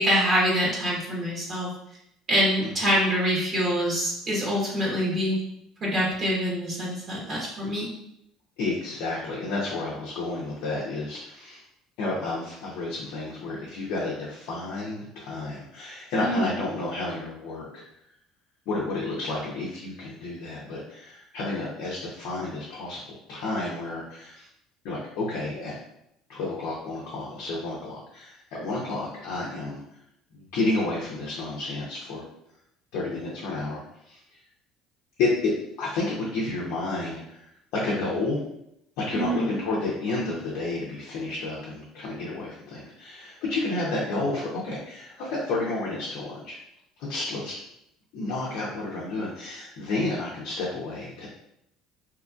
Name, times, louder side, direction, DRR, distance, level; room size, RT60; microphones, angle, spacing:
voice 1, 0.0-1.7 2.3-5.4 5.8-7.9 16.2-16.5 39.1-39.6, equal, 45° right, -5 dB, 1.1 m, -25 dB
voice 2, 8.6-11.6 12.0-17.8 18.7-24.4 24.8-25.8 26.3-29.8 30.3-32.2 32.9-34.2 35.2-35.5 35.8-37.4 37.7-38.4 39.0-46.6 47.1-47.6 48.1-51.3, left 2 dB, 70° left, -5 dB, 0.7 m, -31 dB
2.9 x 2.5 x 2.4 m, 0.78 s
hypercardioid pair, 75°, 0 cm